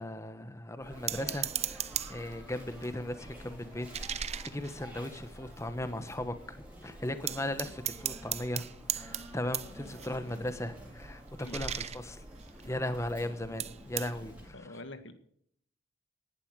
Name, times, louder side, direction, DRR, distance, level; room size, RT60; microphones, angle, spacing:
voice 1, 0.0-12.2 12.6-14.8, left 1 dB, 15° left, 10 dB, 1.3 m, -37 dB
Sneeze, 0.8-14.6, equal, 5° right, 4.6 m, -49 dB
sound 1, 1.1-2.3 2.8-5.6 6.1-6.2 6.4-6.8 7.3-13.2 13.6-14.1, right 10 dB, 35° right, 0.7 m, -38 dB
voice 2, 14.5-15.1, left 2 dB, 70° left, 9 dB, 2.0 m, -45 dB
19.0 x 11.5 x 4.8 m, 0.65 s
head